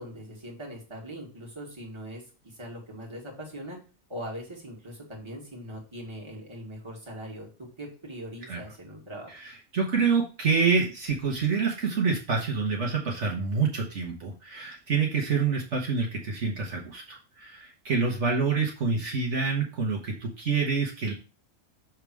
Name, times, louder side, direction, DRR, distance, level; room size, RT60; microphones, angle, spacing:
voice 1, 0.0-3.8 4.1-9.3, equal, 20° right, -2 dB, 2.2 m, -41 dB
voice 2, 9.3-21.1, right 5 dB, 60° right, -1 dB, 1.5 m, -27 dB
6.5 x 3.5 x 6.1 m, 0.35 s
omnidirectional pair, 1.4 m